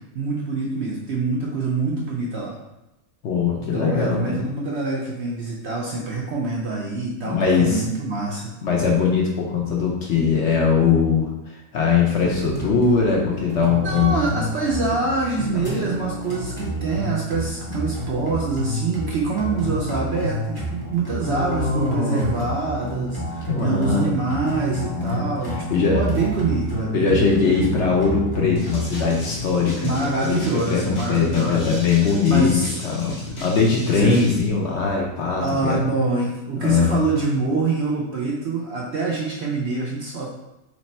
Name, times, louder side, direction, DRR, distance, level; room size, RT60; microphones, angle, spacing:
voice 1, 0.1-2.6 3.7-8.5 13.8-27.7 29.8-31.8 32.1-32.8 33.9-34.2 35.4-40.3, right 3 dB, 65° right, -3 dB, 0.7 m, -25 dB
voice 2, 3.2-4.4 7.2-7.8 8.6-14.1 15.5-16.0 21.2-22.4 23.5-24.2 25.0-25.2 25.7-26.0 26.9-33.1 33.4-35.8 36.6-37.0, left 5 dB, 60° left, -1 dB, 0.8 m, -21 dB
sound 1, 12.2-29.4, equal, 25° left, 0.5 m, -29 dB
sound 2, 28.6-34.5, equal, 85° left, 1.5 m, -36 dB
3.2 x 3.1 x 4.2 m, 0.94 s
omnidirectional pair, 1.6 m